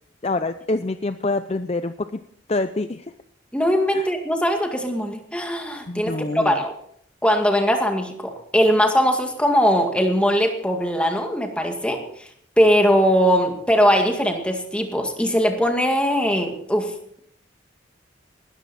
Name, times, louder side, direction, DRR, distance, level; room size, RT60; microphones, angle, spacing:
voice 1, 0.2-2.1 2.5-3.0 3.9-4.1 5.9-6.5, left 2 dB, 30° left, 10 dB, 0.5 m, -26 dB
voice 2, 3.5-6.7 7.2-12.3 12.6-17.2, equal, 5° left, 3 dB, 2.0 m, -20 dB
19.5 x 13.5 x 4.3 m, 0.67 s
head